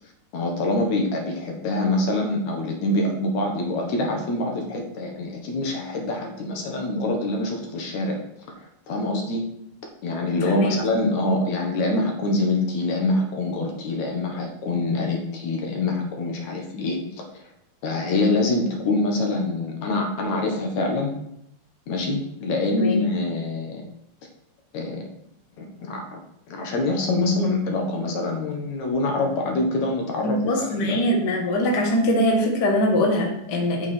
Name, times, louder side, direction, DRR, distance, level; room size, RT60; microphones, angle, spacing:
voice 1, 0.3-8.2 8.9-9.4 10.0-17.2 17.8-21.1 21.9-23.8 24.7-25.0 25.6-26.0 26.5-31.0, left 2 dB, 60° left, 2 dB, 2.1 m, -25 dB
voice 2, 10.4-10.8 16.7-17.0 22.8-23.0 30.2-33.9, left 1 dB, 80° left, 1 dB, 0.9 m, -22 dB
8.2 x 6.8 x 4.4 m, 0.76 s
omnidirectional pair, 4.5 m